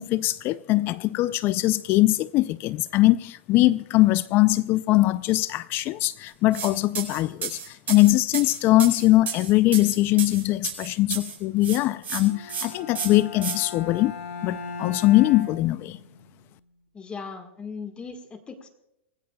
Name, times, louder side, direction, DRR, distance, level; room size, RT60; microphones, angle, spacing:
voice 1, 0.0-14.1 14.4-16.0, left 17 dB, 30° left, 0.4 m, -21 dB
sound 1, 6.5-6.7 6.9-11.4 11.6-12.2 12.5-12.6 12.9-13.5, right 6 dB, 20° right, 4.4 m, -31 dB
Bowed string instrument, 12.2-16.3, left 5 dB, 85° left, 6.9 m, -38 dB
voice 2, 16.9-18.7, left 5 dB, 15° left, 1.5 m, -38 dB
25.5 x 18.0 x 2.3 m
hypercardioid pair, 135°, 7 cm